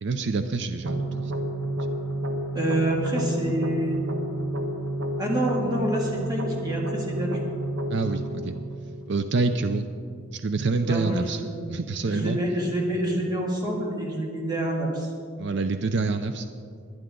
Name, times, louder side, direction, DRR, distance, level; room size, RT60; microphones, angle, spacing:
voice 1, 0.0-1.3 7.9-8.6 9.1-9.8 10.3-11.4 11.7-12.4 15.4-16.5, right 3 dB, 55° right, 8 dB, 0.5 m, -26 dB
sound 1, 0.8-9.8, right 1 dB, 75° right, 1.1 m, -31 dB
voice 2, 2.5-4.0 5.2-7.4 10.8-11.4 12.1-15.1, right 1 dB, 20° right, -2 dB, 2.3 m, -27 dB
20.5 x 9.8 x 3.8 m, 2.3 s
head